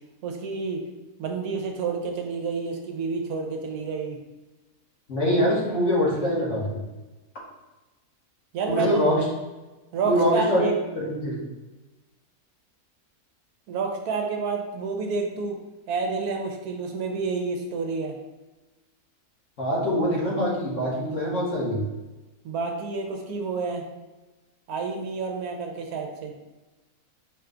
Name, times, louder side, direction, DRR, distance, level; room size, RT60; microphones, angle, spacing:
voice 1, 0.2-0.8 1.2-4.2 8.5-8.9 9.9-10.7 13.7-15.6 15.9-18.2 22.4-23.8 24.7-26.3, right 4 dB, 80° right, 3 dB, 1.1 m, -29 dB
voice 2, 5.1-6.8 8.7-9.2 10.1-10.7 11.0-11.4 19.6-21.8, equal, 55° left, -5 dB, 1.4 m, -24 dB
4.4 x 2.3 x 3.7 m, 1.1 s
omnidirectional pair, 1.6 m